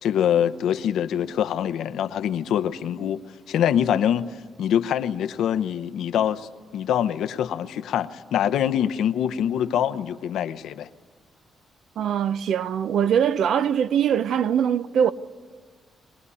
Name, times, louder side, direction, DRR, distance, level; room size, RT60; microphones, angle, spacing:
voice 1, 0.0-3.2 3.5-4.3 4.6-10.9, left 9 dB, 80° left, 0.9 m, -24 dB
voice 2, 12.0-15.1, right 8 dB, 65° right, 0.6 m, -22 dB
22.5 x 20.0 x 9.8 m
cardioid pair, 170°, 0 cm